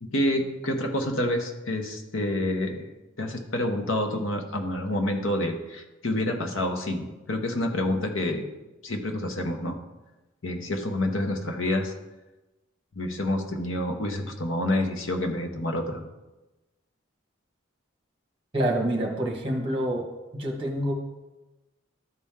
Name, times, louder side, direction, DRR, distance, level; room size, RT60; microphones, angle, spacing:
voice 1, 0.0-2.9 3.2-8.4 8.8-9.8 10.4-11.9 13.0-16.0, left 1 dB, 75° left, 4 dB, 1.0 m, -28 dB
voice 2, 18.5-20.1 20.3-20.9, right 1 dB, 25° right, 0 dB, 1.5 m, -27 dB
12.5 x 4.3 x 3.6 m, 1.1 s
head